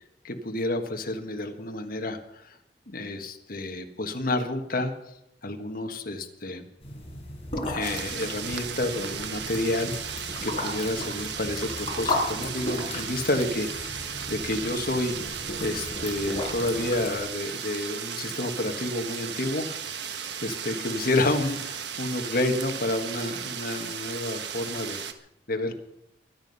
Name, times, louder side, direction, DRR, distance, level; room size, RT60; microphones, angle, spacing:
voice 1, 0.2-2.6 2.9-4.9 5.4-6.7 7.7-19.7 20.1-25.0 25.5-25.7, left 2 dB, 55° left, 4 dB, 1.6 m, -30 dB
sound 1, 6.8-17.2, left 1 dB, 35° left, 4.9 m, -35 dB
sound 2, 7.8-25.1, right 7 dB, 75° right, 1.3 m, -35 dB
23.5 x 9.7 x 5.6 m, 0.81 s
head